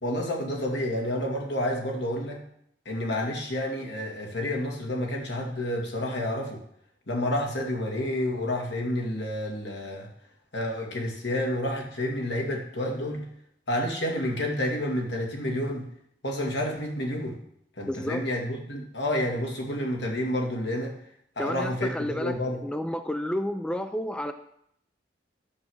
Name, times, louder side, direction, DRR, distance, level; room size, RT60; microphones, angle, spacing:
voice 1, 0.0-2.4 2.9-6.6 7.1-10.1 10.5-13.2 13.7-15.9 16.2-17.4 17.8-20.9 21.4-22.6, left 1 dB, 75° left, 0 dB, 2.3 m, -29 dB
voice 2, 17.9-18.2 21.4-24.3, left 1 dB, 5° left, 8 dB, 0.4 m, -31 dB
9.9 x 7.2 x 6.5 m, 0.71 s
head